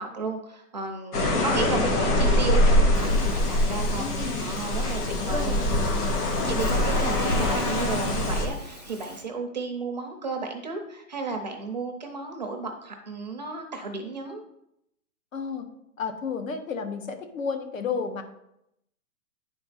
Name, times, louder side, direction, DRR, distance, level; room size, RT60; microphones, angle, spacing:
voice 1, 0.0-4.1 4.4-5.6 5.9-14.4, right 3 dB, 30° right, 3 dB, 0.5 m, -34 dB
sound 1, 1.1-8.5, left 1 dB, 80° left, 2.0 m, -24 dB
voice 2, 1.2-1.7 4.0-4.4 5.1-5.8 6.4-6.7 15.3-15.6 16.0-18.2, left 5 dB, 60° left, 7 dB, 1.1 m, -32 dB
Buzz, 2.9-9.2, equal, 30° left, 0.4 m, -37 dB
9.8 x 4.4 x 4.0 m, 0.80 s
hypercardioid pair, 170°, 45 cm